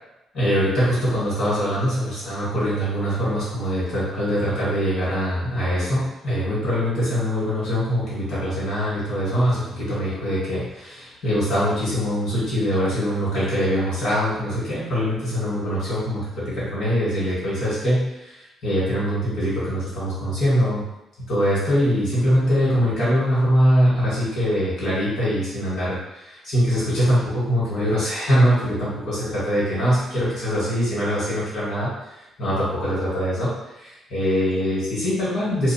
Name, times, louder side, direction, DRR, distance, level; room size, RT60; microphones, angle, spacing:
voice 1, 0.3-20.8 21.3-32.1 32.4-35.7, equal, 50° left, -10 dB, 1.3 m, -23 dB
2.5 x 2.2 x 2.7 m, 0.92 s
cardioid pair, 155°, 0 cm